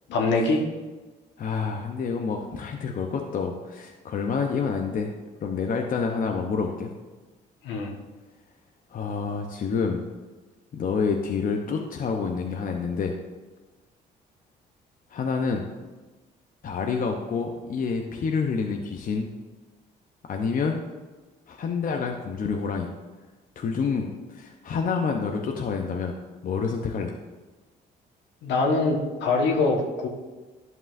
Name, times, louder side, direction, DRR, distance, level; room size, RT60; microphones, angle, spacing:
voice 1, 0.1-0.6 7.6-8.0 28.4-30.1, left 3 dB, 80° left, 1 dB, 1.3 m, -23 dB
voice 2, 1.4-5.1 5.4-6.9 8.9-10.0 10.7-13.1 15.1-15.7 16.6-19.3 20.2-20.8 21.5-22.9 23.6-26.2 26.4-27.1, left 5 dB, 50° left, 3 dB, 0.7 m, -28 dB
11.0 x 5.4 x 2.6 m, 1.2 s
supercardioid pair, 75°, 18 cm